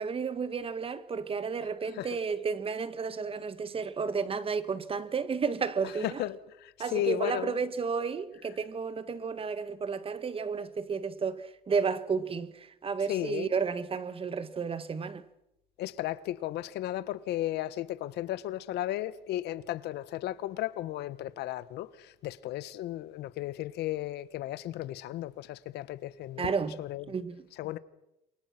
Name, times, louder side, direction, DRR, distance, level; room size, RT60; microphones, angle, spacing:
voice 1, 0.0-6.2 6.8-15.2 26.4-26.8 27.1-27.4, right 5 dB, 35° right, 1.7 m, -32 dB
voice 2, 5.8-7.6 13.1-13.5 15.8-26.5 26.8-27.1 27.5-27.8, left 14 dB, 80° left, 1.3 m, -35 dB
28.5 x 23.5 x 6.0 m
cardioid pair, 110°, 17 cm